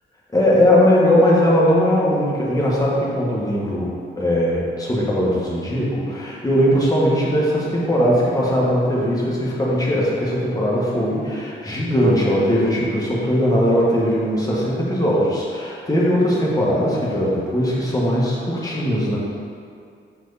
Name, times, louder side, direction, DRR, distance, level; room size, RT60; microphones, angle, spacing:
voice 1, 0.3-19.2, equal, 20° left, -6 dB, 1.6 m, -19 dB
6.3 x 4.7 x 4.1 m, 2.4 s
cardioid pair, 100°, 20 cm